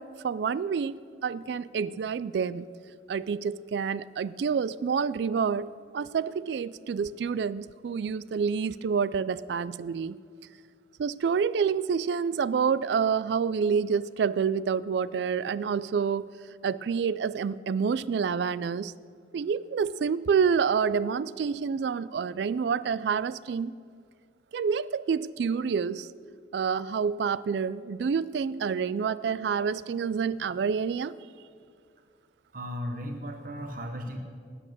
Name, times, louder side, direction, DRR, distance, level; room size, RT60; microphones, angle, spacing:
voice 1, 0.0-2.6 3.1-10.2 11.0-16.3 16.6-18.9 19.3-23.7 24.5-26.1 26.5-31.1, right 6 dB, 70° right, 17 dB, 0.3 m, -28 dB
voice 2, 32.5-34.2, equal, 50° right, 5 dB, 1.1 m, -36 dB
18.5 x 8.5 x 6.8 m, 2.2 s
head